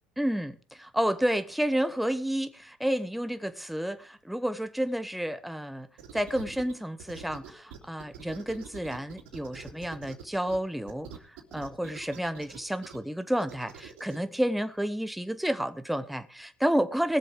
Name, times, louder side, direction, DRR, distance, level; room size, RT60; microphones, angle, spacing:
voice 1, 0.2-17.2, equal, ahead, 0.9 m, -30 dB
sound 1, 6.0-6.7 7.0-10.6 10.9-13.0 13.4-14.2, right 8 dB, 75° right, 2.8 m, -45 dB
19.0 x 7.4 x 5.0 m
supercardioid pair, 85°, 6 cm